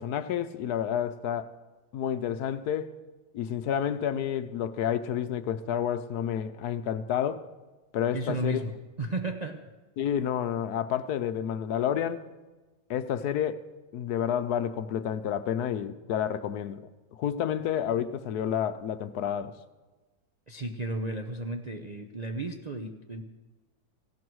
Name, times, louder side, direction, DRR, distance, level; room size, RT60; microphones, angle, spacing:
voice 1, 0.0-1.5 1.9-2.9 3.3-7.5 7.9-8.6 10.0-12.3 12.9-13.6 13.9-19.5, left 9 dB, 70° left, 12 dB, 1.1 m, -30 dB
voice 2, 8.1-9.7 20.5-23.2, right 2 dB, 40° right, 3 dB, 0.6 m, -34 dB
18.5 x 15.5 x 4.7 m, 1.2 s
omnidirectional pair, 1.8 m